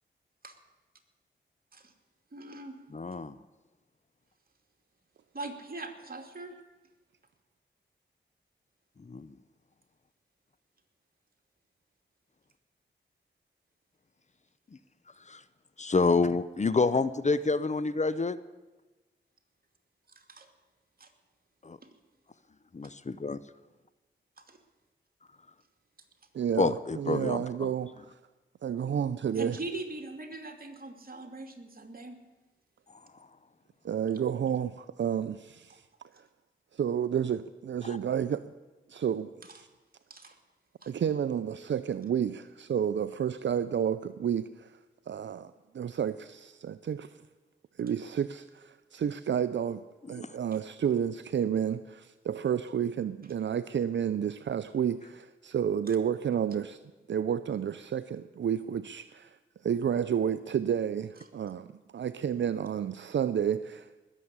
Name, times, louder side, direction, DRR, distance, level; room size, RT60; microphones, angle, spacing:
voice 1, 2.3-2.8 5.3-6.5 20.1-20.5 21.0-21.1 21.8-21.9 24.4-24.6 29.4-32.2 40.1-40.4 40.8-40.9 55.9-56.0, right 2 dB, 45° right, 4 dB, 2.5 m, -41 dB
voice 2, 2.9-3.4 9.1-9.3 15.3-15.4 15.8-18.4 21.6-21.8 22.7-23.4 26.6-27.7 37.8-38.0 50.2-50.3, left 3 dB, 35° left, 15 dB, 0.7 m, -28 dB
voice 3, 26.3-28.2 28.6-29.6 33.8-35.8 36.7-38.4 38.9-39.7 40.9-44.7 45.1-47.1 47.8-49.8 50.1-56.8 57.1-59.4 59.6-63.9, right 8 dB, 65° right, 13 dB, 0.5 m, -31 dB
19.5 x 7.3 x 8.2 m, 1.2 s
cardioid pair, 50°, 20 cm